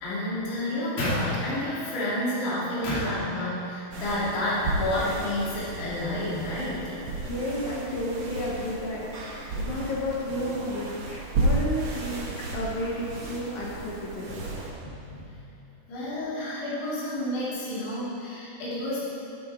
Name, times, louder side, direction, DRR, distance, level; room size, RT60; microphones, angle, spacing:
voice 1, 0.0-7.0 11.1-11.2 14.8-15.3 15.9-19.0, left 1 dB, 80° left, -9 dB, 4.9 m, -30 dB
sound 1, 3.9-14.7, right 2 dB, 60° right, 1.7 m, -33 dB
voice 2, 6.9-14.5, equal, 65° left, -4 dB, 2.0 m, -32 dB
12.5 x 8.7 x 4.4 m, 2.6 s
omnidirectional pair, 4.7 m